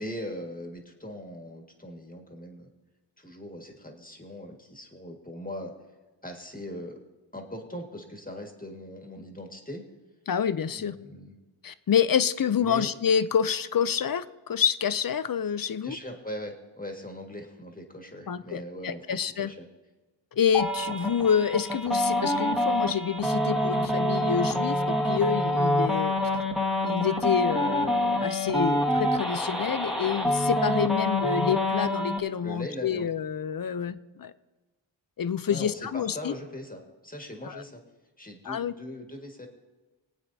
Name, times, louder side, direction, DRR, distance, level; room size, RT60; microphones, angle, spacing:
voice 1, 0.0-2.7 3.2-5.7 6.2-7.0 7.3-9.8 10.7-11.3 12.6-12.9 15.8-19.6 32.4-33.1 35.5-37.8 38.2-39.5, left 1 dB, 20° left, 2 dB, 1.8 m, -40 dB
voice 2, 10.3-11.0 11.6-16.0 18.3-19.5 20.3-26.1 26.8-34.3 35.2-36.3 37.4-37.6 38.5-38.7, left 8 dB, 50° left, 15 dB, 0.5 m, -27 dB
sound 1, 20.5-32.2, left 1 dB, ahead, 1.5 m, -26 dB
21.5 x 8.9 x 2.7 m, 1.2 s
wide cardioid pair, 70°, 47 cm